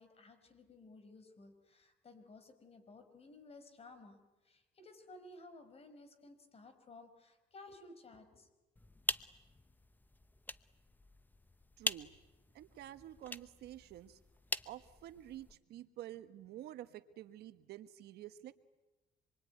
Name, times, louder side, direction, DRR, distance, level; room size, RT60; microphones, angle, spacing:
voice 1, 0.0-8.5, left 2 dB, 35° left, 8 dB, 5.1 m, -56 dB
sound 1, 8.8-15.6, left 2 dB, 10° left, 0.9 m, -44 dB
voice 2, 11.8-12.1 12.5-14.2 14.6-18.5, right 13 dB, 75° right, 11 dB, 1.3 m, -49 dB
26.5 x 23.5 x 9.5 m, 1.1 s
cardioid pair, 110°, 17 cm